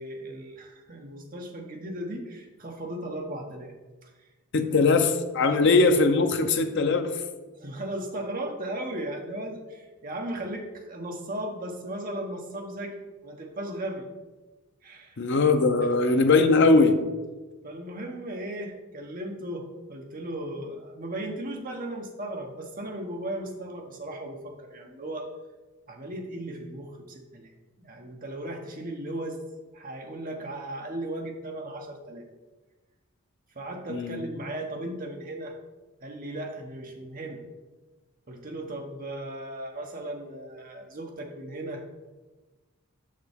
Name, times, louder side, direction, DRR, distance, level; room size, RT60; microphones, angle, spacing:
voice 1, 0.0-3.7 4.0-4.1 4.6-5.0 5.5-5.8 7.6-12.9 13.2-14.1 14.8-15.2 17.6-25.3 25.9-27.5 27.8-29.4 29.7-32.2 33.5-35.6 36.0-37.4 38.3-41.9, right 1 dB, 40° right, 2 dB, 0.9 m, -36 dB
voice 2, 4.5-7.2 15.2-17.0 33.9-34.2, left 3 dB, 50° left, 7 dB, 0.6 m, -21 dB
6.6 x 6.6 x 3.5 m, 1.2 s
head